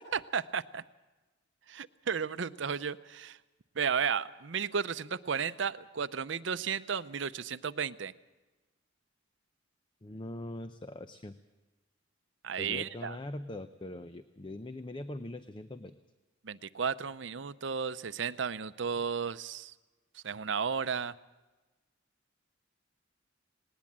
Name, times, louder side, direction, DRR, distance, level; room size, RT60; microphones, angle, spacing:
voice 1, 0.1-0.8 1.7-3.4 3.8-8.1 12.4-13.2 16.4-19.7 20.1-21.1, right 6 dB, 70° right, 14 dB, 0.6 m, -33 dB
voice 2, 10.0-11.3 12.6-16.0, left 1 dB, 25° left, 10 dB, 0.6 m, -42 dB
19.5 x 19.0 x 7.4 m, 1.2 s
head